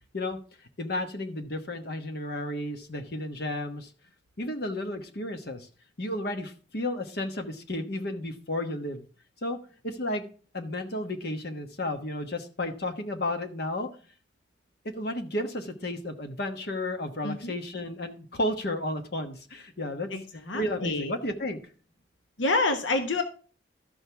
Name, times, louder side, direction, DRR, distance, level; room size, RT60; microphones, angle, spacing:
voice 1, 0.8-3.9 4.4-5.7 6.0-9.0 9.4-9.6 9.8-10.2 10.5-13.9 14.8-20.1 20.5-21.6, left 1 dB, 55° left, 6 dB, 1.2 m, -32 dB
voice 2, 17.2-17.5 20.1-21.1 22.4-23.2, left 3 dB, 85° left, 7 dB, 1.1 m, -28 dB
12.5 x 6.5 x 3.4 m, 0.39 s
head